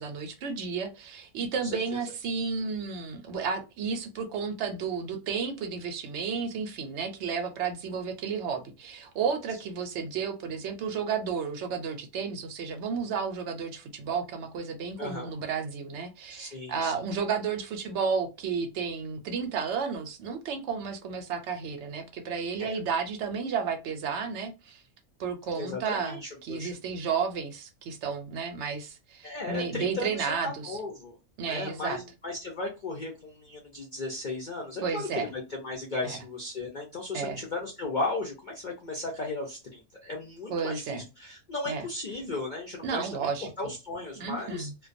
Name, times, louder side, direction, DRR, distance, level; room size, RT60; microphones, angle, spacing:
voice 1, 0.0-24.8 25.2-30.8 31.4-32.0 34.8-35.3 36.0-36.2 37.1-37.4 40.5-41.0 41.7-41.9 42.8-43.5 44.2-44.7, right 6 dB, 65° right, 0.7 m, -32 dB
voice 2, 1.6-2.0 15.0-15.3 16.3-16.9 22.6-22.7 25.6-26.7 29.2-31.1 31.5-43.1 43.6-44.9, left 2 dB, 55° left, 0.5 m, -36 dB
2.2 x 2.2 x 2.5 m
omnidirectional pair, 1.5 m